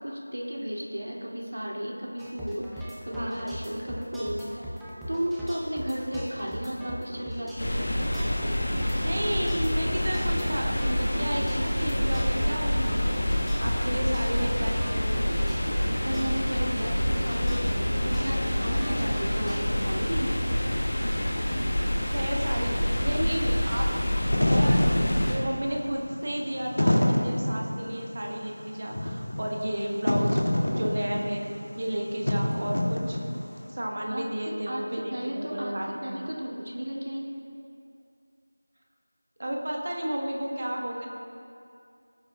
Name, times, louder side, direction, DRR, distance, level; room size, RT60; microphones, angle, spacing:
voice 1, 0.0-4.7 5.1-7.8 15.8-20.4 34.1-34.8 35.1-35.7 36.0-37.3, equal, 75° right, -4 dB, 2.3 m, -34 dB
sound 1, 2.2-19.7, equal, ahead, 0.3 m, -39 dB
sound 2, 7.6-25.3, equal, 30° left, 1.3 m, -27 dB
voice 2, 9.0-13.3 13.6-15.2 22.1-23.9 24.3-24.9 25.3-31.5 31.8-33.2 33.7-36.3 39.4-41.1, right 1 dB, 30° right, 0 dB, 1.1 m, -32 dB
Wind / Fire, 24.1-33.6, left 1 dB, 80° left, 2.0 m, -27 dB
19.0 x 9.3 x 2.2 m, 2.5 s
figure-of-eight pair, 180°, 0 cm